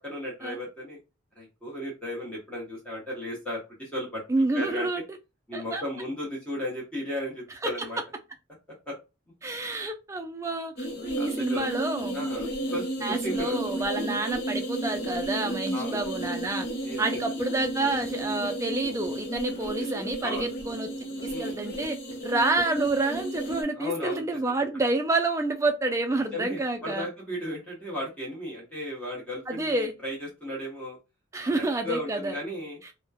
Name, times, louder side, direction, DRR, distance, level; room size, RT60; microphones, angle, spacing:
voice 1, 0.0-1.0 1.4-4.2 4.5-4.9 5.5-8.0 8.9-9.0 11.2-11.7 12.1-13.6 15.7-16.0 16.8-17.0 20.2-20.5 21.2-21.5 23.7-24.2 26.3-31.0 31.4-32.8, left 1 dB, 5° left, 0.8 m, -35 dB
voice 2, 4.3-5.0 5.5-5.8 7.6-7.7 9.4-12.3 13.0-16.7 17.0-20.9 21.4-22.0 22.2-27.1 29.5-29.9 31.3-32.4, right 2 dB, 15° right, 0.3 m, -28 dB
sound 1, 10.8-23.6, right 1 dB, 50° left, 0.7 m, -33 dB
3.0 x 2.1 x 2.2 m
head